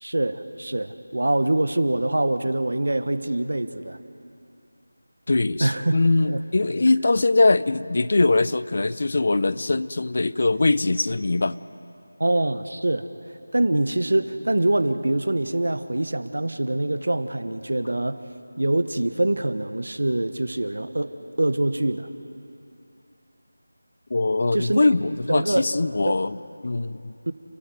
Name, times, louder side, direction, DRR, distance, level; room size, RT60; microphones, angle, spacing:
voice 1, 0.0-4.0 5.6-6.0 6.3-6.4 12.2-13.1 13.5-18.2 18.6-21.1 21.4-22.1 24.5-24.9 25.3-25.6 26.0-26.1 27.3-27.4, right 1 dB, 80° right, 11 dB, 1.4 m, -24 dB
voice 2, 5.3-11.6 24.1-26.4 26.6-27.1, left 3 dB, 50° left, 16 dB, 0.6 m, -22 dB
29.5 x 14.5 x 9.5 m, 2.7 s
figure-of-eight pair, 175°, 0 cm